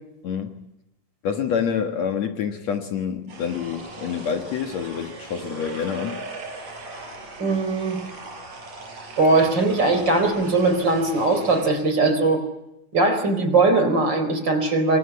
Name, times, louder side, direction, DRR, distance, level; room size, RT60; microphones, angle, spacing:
voice 1, 0.2-0.6 1.2-6.2, left 7 dB, 55° left, 2.4 m, -27 dB
sound 1, 3.3-11.7, right 2 dB, 50° right, 6.5 m, -39 dB
voice 2, 7.4-8.0 9.2-12.4 12.9-15.0, right 3 dB, 30° right, 4.5 m, -20 dB
27.0 x 23.5 x 8.4 m
omnidirectional pair, 4.0 m